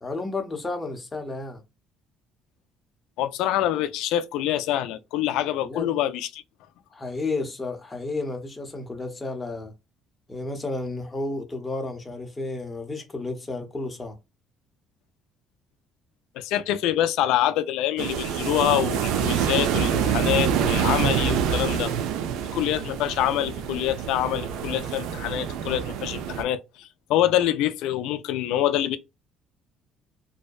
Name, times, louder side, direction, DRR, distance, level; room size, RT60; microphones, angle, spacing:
voice 1, 0.0-1.6 5.6-5.9 6.9-9.7 10.3-14.2, left 3 dB, 20° left, 0.8 m, -32 dB
voice 2, 3.2-6.4 16.4-21.9 22.5-29.0, left 12 dB, 85° left, 0.3 m, -25 dB
sound 1, 18.0-26.4, right 8 dB, 85° right, 0.4 m, -26 dB
2.6 x 2.1 x 2.2 m
cardioid pair, 105°, 0 cm